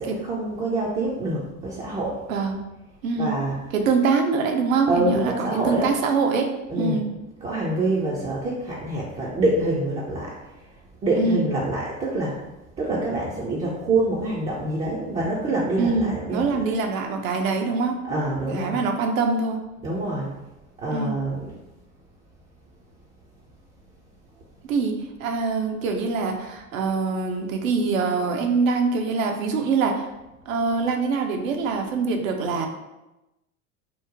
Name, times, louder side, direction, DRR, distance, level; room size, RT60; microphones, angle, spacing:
voice 1, 0.0-2.2 3.2-3.6 4.9-5.9 6.7-7.0 7.4-10.3 11.0-12.4 12.8-16.6 18.1-18.8 19.8-20.3 20.8-21.5, right 2 dB, 15° right, -5 dB, 0.4 m, -26 dB
voice 2, 2.3-2.6 3.0-3.4 3.7-6.5 6.8-7.1 11.2-11.4 15.8-18.0 18.5-19.6 20.9-21.2 24.7-30.0 30.5-32.7, right 4 dB, 65° right, 4 dB, 0.6 m, -24 dB
3.0 x 2.1 x 3.7 m, 0.98 s
figure-of-eight pair, 75°, 43 cm